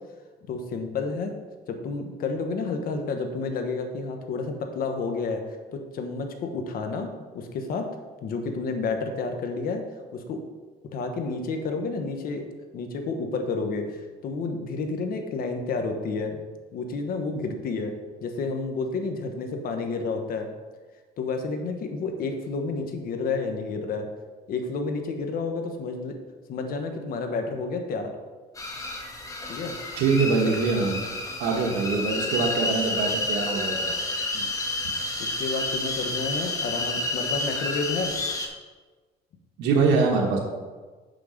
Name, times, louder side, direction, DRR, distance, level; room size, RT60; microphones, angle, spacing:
voice 1, 0.5-1.3 1.7-5.4 5.7-7.1 7.3-7.9 8.2-9.8 10.1-10.4 10.9-12.5 12.7-16.4 16.7-17.9 18.2-20.5 21.2-24.1 24.5-26.1 26.5-28.1 29.5-29.7 32.3-32.4 34.3-34.5 35.2-38.1, left 4 dB, 60° left, 5 dB, 1.2 m, -30 dB
sound 1, 28.6-38.5, left 2 dB, 20° left, 1.3 m, -30 dB
voice 2, 30.0-31.0 31.4-33.9 39.6-40.4, right 4 dB, 85° right, 0 dB, 1.2 m, -23 dB
6.6 x 6.1 x 5.0 m, 1.4 s
cardioid pair, 110°, 17 cm